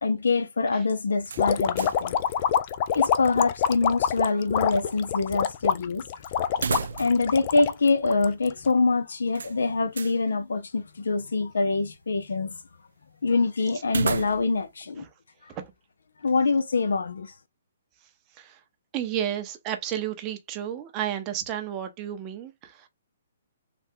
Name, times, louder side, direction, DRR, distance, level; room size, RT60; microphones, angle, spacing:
voice 1, 0.0-2.2 2.9-6.0 6.5-6.7 7.0-12.6 13.2-15.1 16.2-17.3, left 3 dB, 90° left, 0.6 m, -25 dB
sound 1, 1.2-2.1 2.4-2.5 6.5-7.4 7.7-7.8 9.4-10.2 13.8-14.7, right 5 dB, 80° right, 0.3 m, -32 dB
sound 2, 1.4-8.7, left 8 dB, 35° left, 0.3 m, -26 dB
voice 2, 18.9-22.9, right 10 dB, 25° right, 0.6 m, -32 dB
3.4 x 2.3 x 2.7 m
hypercardioid pair, 155°, 0 cm